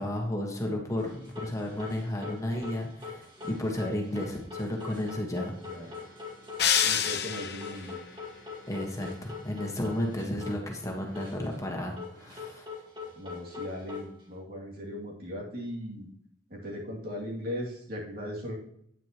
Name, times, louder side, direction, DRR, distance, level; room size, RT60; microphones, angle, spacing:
voice 1, 0.0-6.1 8.7-12.7, left 1 dB, 20° left, 1 dB, 1.5 m, -33 dB
sound 1, 1.0-10.6 10.9-11.6 12.0-14.3, left 5 dB, 25° right, 2.1 m, -43 dB
voice 2, 5.2-5.9 6.8-8.0 13.2-16.1 16.5-18.6, equal, 55° right, -3 dB, 2.6 m, -38 dB
sound 2, 6.6-7.9, left 8 dB, 60° left, 0.9 m, -26 dB
9.8 x 9.2 x 3.0 m, 0.72 s
head